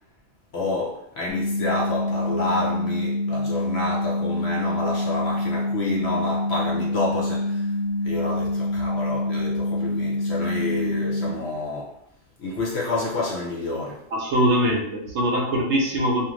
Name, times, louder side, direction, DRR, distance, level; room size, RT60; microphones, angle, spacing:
voice 1, 0.5-7.7 8.0-11.9 12.4-14.0, left 2 dB, 60° left, -3 dB, 0.7 m, -29 dB
sound 1, 1.3-11.3, left 2 dB, 10° left, 0.4 m, -26 dB
voice 2, 14.1-16.3, equal, 65° right, -1 dB, 0.8 m, -22 dB
2.4 x 2.4 x 3.0 m, 0.73 s
omnidirectional pair, 1.4 m